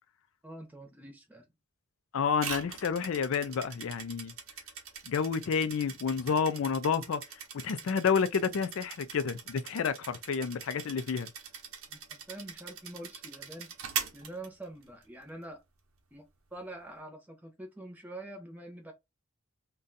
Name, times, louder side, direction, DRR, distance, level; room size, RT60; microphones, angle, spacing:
voice 1, 0.4-1.4 11.9-13.8 14.1-15.6 16.1-16.3 16.5-18.9, right 1 dB, 10° right, 0.7 m, -45 dB
voice 2, 2.1-4.3 5.1-7.2 7.6-11.3, left 6 dB, 70° left, 0.4 m, -30 dB
sound 1, 2.4-15.0, right 7 dB, 75° right, 0.7 m, -42 dB
2.6 x 2.2 x 3.8 m
head